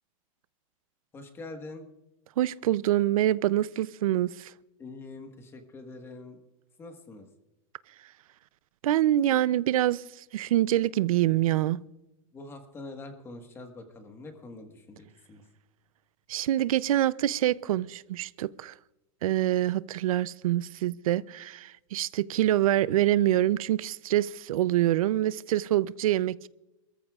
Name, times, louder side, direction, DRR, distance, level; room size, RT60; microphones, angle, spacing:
voice 1, 1.1-1.9 4.8-6.4 6.8-7.3 12.3-15.4, left 2 dB, 15° left, 1.4 m, -44 dB
voice 2, 2.4-4.5 8.8-11.8 16.3-18.7 19.2-26.5, right 13 dB, 85° right, 0.5 m, -25 dB
27.5 x 14.0 x 2.4 m
supercardioid pair, 165°, 17 cm